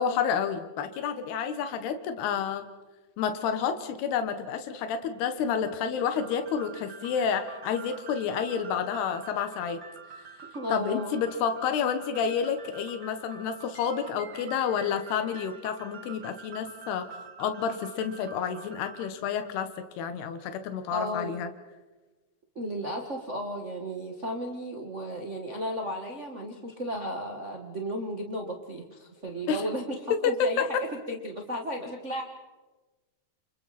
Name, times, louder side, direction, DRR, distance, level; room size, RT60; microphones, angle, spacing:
voice 1, 0.0-2.7 3.2-9.8 10.7-19.7 20.0-21.5 29.5-29.6 30.2-30.8, left 7 dB, 85° left, 8 dB, 3.4 m, -29 dB
sound 1, 6.1-19.1, right 6 dB, 55° right, 1.0 m, -47 dB
voice 2, 10.5-11.2 20.9-21.3 22.5-30.8 31.1-32.2, equal, 75° right, 1 dB, 0.6 m, -34 dB
28.5 x 28.5 x 4.2 m, 1.2 s
omnidirectional pair, 4.5 m